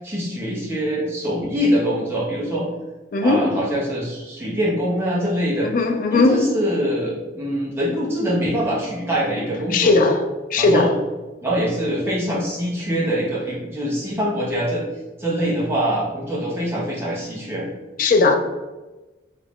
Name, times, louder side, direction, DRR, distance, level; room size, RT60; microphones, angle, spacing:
voice 1, 0.0-2.7 3.2-5.7 6.1-10.0 10.6-10.9 11.4-14.8 15.2-17.7, equal, 15° right, 0.7 m, -24 dB
voice 2, 3.1-3.5 5.6-6.4 9.7-10.3 10.5-10.9 18.0-18.4, left 3 dB, 45° left, 0.3 m, -17 dB
3.1 x 2.4 x 3.4 m
head